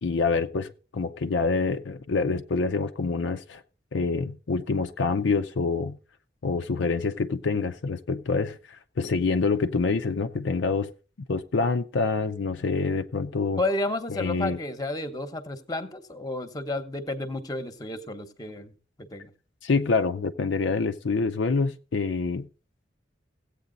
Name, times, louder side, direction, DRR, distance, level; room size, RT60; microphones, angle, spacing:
voice 1, 0.0-3.6 3.9-6.0 6.4-10.9 11.3-13.6 14.1-14.6 19.6-22.5, left 4 dB, 70° left, 0.5 m, -26 dB
voice 2, 13.6-18.7 19.0-19.3, left 2 dB, 20° left, 1.0 m, -31 dB
15.5 x 8.3 x 3.9 m
head